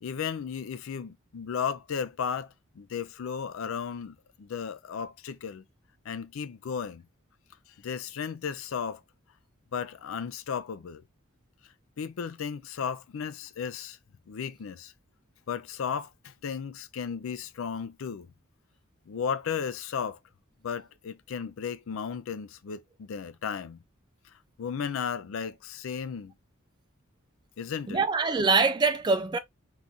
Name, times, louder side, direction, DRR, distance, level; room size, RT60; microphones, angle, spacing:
voice 1, 0.0-5.6 6.0-7.0 7.8-9.0 9.7-11.0 12.0-14.0 14.3-14.9 15.5-18.3 19.1-20.2 20.6-23.8 24.6-26.3 27.6-28.0, left 7 dB, 70° left, 0.4 m, -34 dB
voice 2, 27.9-29.4, right 4 dB, 20° right, 0.3 m, -24 dB
3.8 x 2.4 x 2.7 m
head